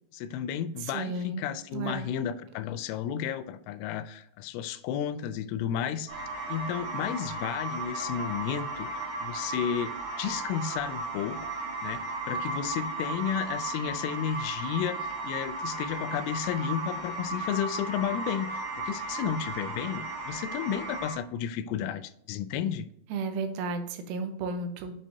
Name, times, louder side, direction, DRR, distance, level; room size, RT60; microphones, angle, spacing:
voice 1, 0.1-6.1 6.5-11.5 11.8-22.9, left 9 dB, 90° left, 12 dB, 3.0 m, -32 dB
voice 2, 0.9-1.5 1.7-2.1 23.1-24.9, right 3 dB, 90° right, 7 dB, 3.4 m, -33 dB
sound 1, 6.1-21.1, right 2 dB, 55° right, 3.6 m, -35 dB
8.5 x 5.6 x 2.7 m, 0.76 s
omnidirectional pair, 5.4 m